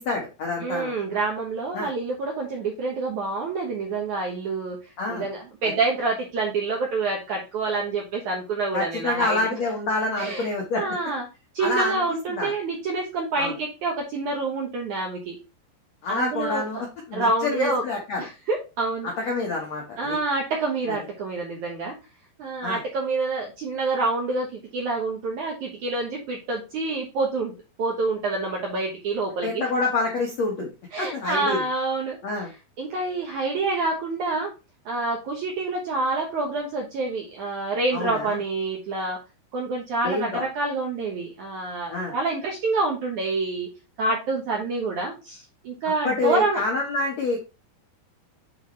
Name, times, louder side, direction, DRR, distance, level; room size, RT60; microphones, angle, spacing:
voice 1, 0.0-0.9 1.7-1.9 5.0-5.3 8.7-10.9 11.6-12.5 13.4-13.5 16.0-18.2 19.0-20.2 20.9-21.0 22.6-22.8 29.4-30.7 31.0-31.6 32.2-32.5 37.9-38.4 40.0-40.4 41.9-42.1 46.0-47.4, left 3 dB, 75° left, -1 dB, 1.6 m, -27 dB
voice 2, 0.6-9.4 10.2-10.5 10.7-11.3 11.5-15.4 16.1-16.6 17.1-17.8 18.2-19.1 20.0-22.0 22.4-27.5 27.8-29.6 30.9-32.2 32.8-34.5 34.9-39.2 39.5-43.7 44.0-46.6, right 3 dB, 70° right, 0 dB, 1.8 m, -27 dB
8.8 x 4.2 x 3.2 m, 0.29 s
omnidirectional pair, 5.0 m